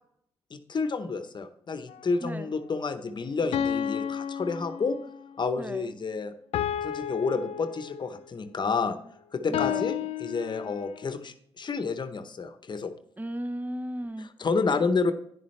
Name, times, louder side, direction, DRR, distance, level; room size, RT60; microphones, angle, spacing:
voice 1, 0.5-5.0 5.4-6.3 6.8-9.0 9.3-12.9 14.2-15.1, left 4 dB, 50° left, 10 dB, 0.8 m, -30 dB
sound 1, 1.9-2.1 3.5-5.2 6.5-8.2 9.5-11.0, left 9 dB, 80° left, 0.4 m, -32 dB
voice 2, 2.2-2.5 5.6-5.9 9.5-9.9 13.2-14.3, right 1 dB, 15° right, 11 dB, 0.7 m, -35 dB
10.0 x 6.9 x 3.2 m, 0.72 s
cardioid pair, 65°, 10 cm